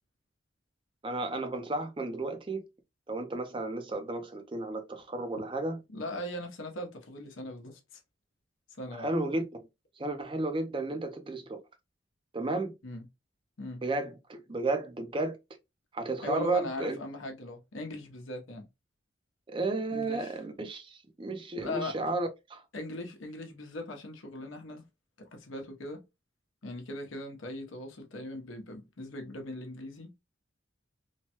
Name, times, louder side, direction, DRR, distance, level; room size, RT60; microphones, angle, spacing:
voice 1, 1.0-2.7 3.1-5.8 8.9-9.7 10.0-11.6 12.3-12.7 13.8-15.4 15.9-17.0 19.5-22.6, right 2 dB, 25° right, 0.5 m, -33 dB
voice 2, 5.9-8.0 8.8-9.1 12.8-13.0 13.6-13.8 16.2-18.7 19.9-20.3 21.6-22.0 22.7-24.8 25.2-26.0 26.6-30.2, left 1 dB, 75° left, 0.8 m, -39 dB
3.1 x 2.1 x 2.8 m
head